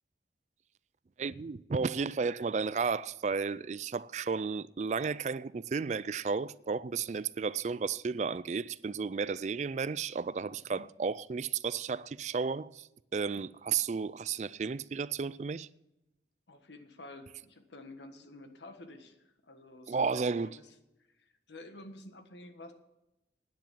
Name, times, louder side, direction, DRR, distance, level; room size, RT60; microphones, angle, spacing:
voice 1, 1.2-15.7 19.9-20.6, right 5 dB, 40° right, 0.3 m, -33 dB
voice 2, 10.5-10.9 16.5-20.7 21.1-22.7, left 2 dB, 80° left, 1.5 m, -51 dB
10.5 x 9.3 x 7.5 m
head